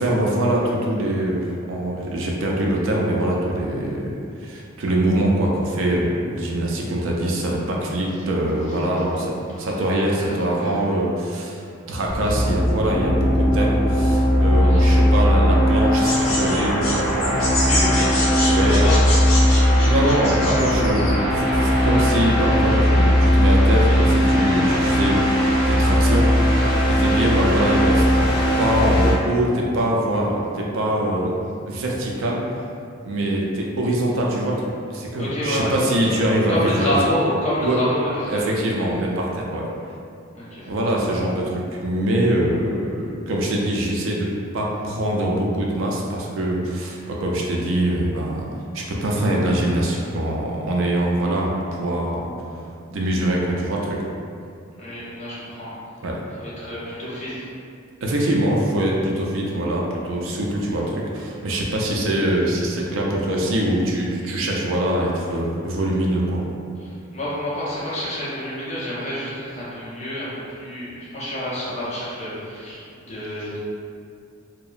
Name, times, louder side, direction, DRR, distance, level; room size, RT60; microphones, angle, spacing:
voice 1, 0.0-11.6 11.9-16.8 18.5-18.9 19.5-19.6 19.8-25.2 25.7-31.3 31.7-32.4 33.0-34.7 34.9-37.0 37.6-37.8 38.3-39.7 40.7-48.5 48.7-52.2 52.9-54.1 56.0-56.2 58.0-66.4, right 1 dB, 70° right, -2 dB, 0.4 m, -23 dB
voice 2, 10.1-10.8 14.6-14.9 17.4-19.0 23.8-24.0 27.0-27.3 35.2-36.2 36.5-38.4 40.3-40.7 54.8-55.7 56.4-57.4 66.8-73.6, left 1 dB, 35° left, -9 dB, 0.7 m, -28 dB
sound 1, 12.1-29.1, equal, 5° left, 1.5 m, -18 dB
sound 2, 16.0-21.1, left 2 dB, 80° left, 0.7 m, -27 dB
2.8 x 2.0 x 2.4 m, 2.4 s
head